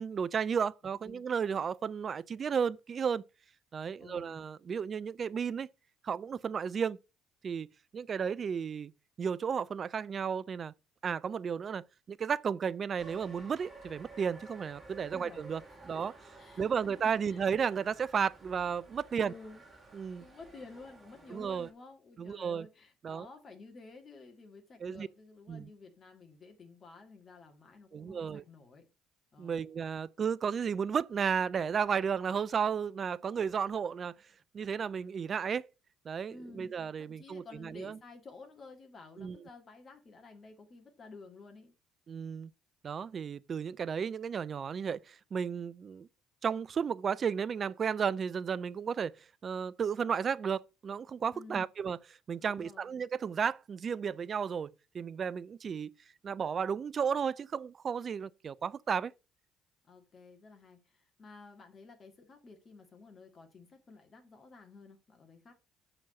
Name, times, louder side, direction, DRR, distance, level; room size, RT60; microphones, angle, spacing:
voice 1, 0.0-3.2 3.7-5.7 6.0-7.0 7.4-7.7 7.9-8.9 9.2-10.7 11.0-15.6 15.9-16.1 16.6-19.3 19.9-20.2 21.3-21.7 22.2-22.7 23.0-23.3 24.8-25.1 25.5-25.7 27.9-28.4 29.4-34.1 34.5-35.7 36.1-38.0 39.2-39.4 42.1-42.5 42.8-46.1 46.4-52.0 52.3-55.9 56.2-59.1, right 7 dB, 40° right, 0.4 m, -33 dB
voice 2, 4.0-4.4 15.1-15.4 15.7-17.4 19.2-19.6 20.2-28.9 29.3-29.7 36.3-41.7 51.3-51.7 52.4-52.9 59.8-65.5, left 3 dB, 40° left, 2.2 m, -53 dB
cave monsters, 13.0-21.7, right 2 dB, 25° right, 3.1 m, -53 dB
7.1 x 4.9 x 5.7 m
figure-of-eight pair, 50°, 0 cm